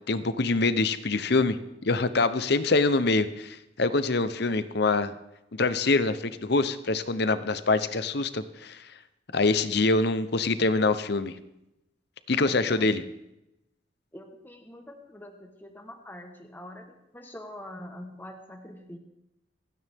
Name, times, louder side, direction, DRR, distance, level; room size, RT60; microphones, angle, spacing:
voice 1, 0.1-1.6 1.8-5.1 5.5-8.9 9.3-11.4 12.3-13.0, left 3 dB, 55° left, 12 dB, 0.9 m, -25 dB
voice 2, 12.4-13.0 14.1-19.0, left 1 dB, 10° left, 3 dB, 1.2 m, -44 dB
28.0 x 9.6 x 3.6 m, 0.88 s
head